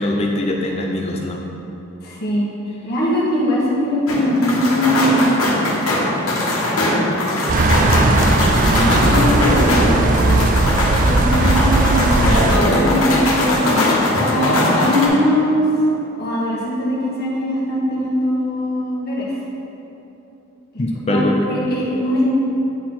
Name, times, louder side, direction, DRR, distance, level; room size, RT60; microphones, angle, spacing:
voice 1, 0.0-1.4 20.8-21.4, left 1 dB, 30° left, 0 dB, 0.5 m, -21 dB
voice 2, 2.0-2.5 2.8-5.7 8.7-10.5 11.0-15.7 16.2-19.3 21.1-22.2, left 1 dB, 50° left, -6 dB, 1.5 m, -21 dB
sound 1, 4.1-15.1, left 1 dB, 85° left, 1.4 m, -20 dB
sound 2, 7.5-12.6, right 2 dB, 40° right, 0.3 m, -17 dB
9.2 x 4.1 x 4.3 m, 3.0 s
head